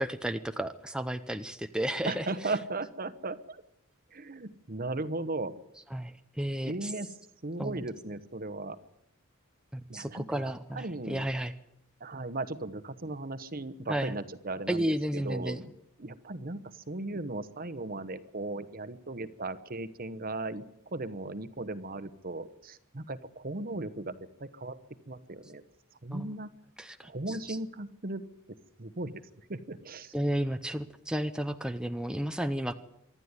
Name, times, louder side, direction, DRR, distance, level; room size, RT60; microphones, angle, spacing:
voice 1, 0.0-2.5 5.9-6.9 7.6-7.9 9.7-11.5 13.9-14.2 14.7-15.6 26.1-26.4 26.8-27.6 30.1-32.7, right 1 dB, 5° right, 8 dB, 0.7 m, -33 dB
voice 2, 2.1-3.6 4.1-5.5 6.6-7.1 7.4-8.8 9.9-11.4 12.0-24.8 25.1-25.6 26.0-26.5 27.0-28.2 28.8-29.2 29.5-30.1, right 2 dB, 45° right, 13 dB, 1.1 m, -37 dB
25.0 x 12.5 x 9.8 m, 0.79 s
head